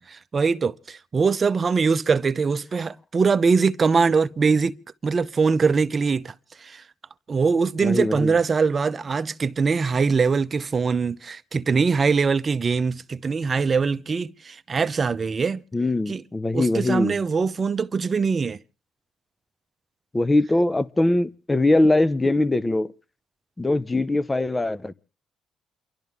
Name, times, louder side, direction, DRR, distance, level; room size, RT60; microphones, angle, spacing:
voice 1, 0.1-4.8 5.0-6.3 6.6-6.8 7.3-15.6 16.1-16.2 16.5-18.6, right 5 dB, 40° right, 0.8 m, -22 dB
voice 2, 7.8-8.3 15.7-17.2 20.1-22.9 23.6-24.9, left 2 dB, 20° left, 0.8 m, -22 dB
28.5 x 12.0 x 3.6 m
cardioid pair, 90°, 0 cm